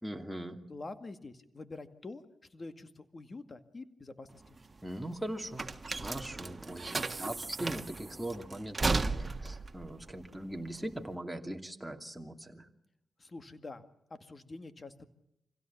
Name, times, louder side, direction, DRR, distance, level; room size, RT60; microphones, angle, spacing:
voice 1, 0.0-0.6 4.8-5.7 6.0-12.7, right 1 dB, 5° right, 4 dB, 2.7 m, -40 dB
voice 2, 0.7-2.2 2.5-4.6 13.2-13.8 14.1-15.1, left 3 dB, 40° left, 10 dB, 2.2 m, -46 dB
sound 1, 4.3-11.1, right 3 dB, 35° right, 1.6 m, -36 dB
25.5 x 16.5 x 7.3 m, 0.83 s
cardioid pair, 60°, 0 cm